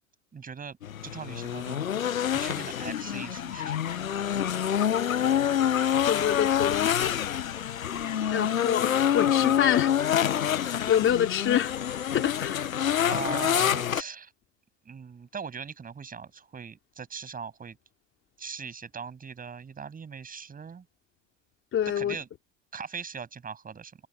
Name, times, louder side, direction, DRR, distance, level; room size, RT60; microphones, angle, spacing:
voice 1, 0.3-0.8 1.0-1.9 2.3-4.1 13.0-14.3 14.8-17.8 18.4-20.9 22.0-22.3 22.7-23.9, right 6 dB, 20° right, 7.6 m, -40 dB
sound 1, 0.8-14.0, left 9 dB, 80° left, 1.1 m, -27 dB
voice 2, 6.1-7.2 8.3-9.9 10.5-11.7 12.1-12.7 21.7-22.2, left 10 dB, 30° left, 4.0 m, -26 dB
figure-of-eight pair, 85°, 40 cm